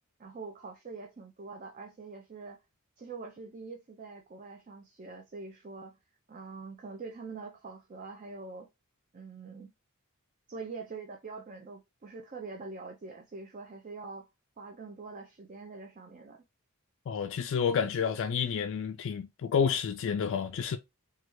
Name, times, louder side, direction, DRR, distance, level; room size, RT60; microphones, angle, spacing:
voice 1, 0.2-2.6 3.0-6.0 6.3-8.7 9.1-9.7 10.5-14.3 14.6-16.4, right 4 dB, 35° right, 0.4 m, -44 dB
voice 2, 17.1-20.8, left 7 dB, 60° left, 0.3 m, -29 dB
3.2 x 2.3 x 2.9 m
head